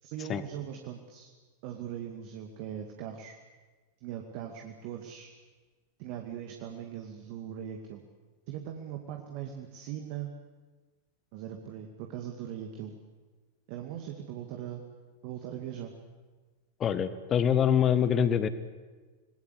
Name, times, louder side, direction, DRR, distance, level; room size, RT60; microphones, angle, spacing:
voice 1, 0.0-1.3 1.6-3.4 4.0-5.3 6.0-8.0 8.5-10.3 11.3-12.9 13.7-14.8 15.2-15.9, right 10 dB, 45° right, 3 dB, 2.3 m, -40 dB
voice 2, 16.8-18.5, left 8 dB, 25° left, 13 dB, 1.7 m, -25 dB
26.5 x 20.5 x 8.3 m, 1.4 s
figure-of-eight pair, 90°, 0 cm